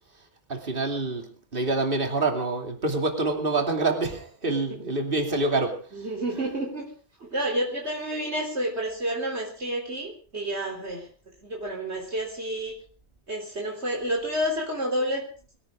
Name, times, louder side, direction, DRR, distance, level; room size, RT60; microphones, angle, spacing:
voice 1, 0.5-5.8, right 3 dB, 50° right, 3 dB, 2.9 m, -26 dB
voice 2, 5.9-6.9 7.2-11.1 11.4-12.8 13.3-15.3, right 1 dB, 65° right, 0 dB, 3.9 m, -30 dB
23.5 x 16.5 x 3.7 m, 0.40 s
omnidirectional pair, 1.2 m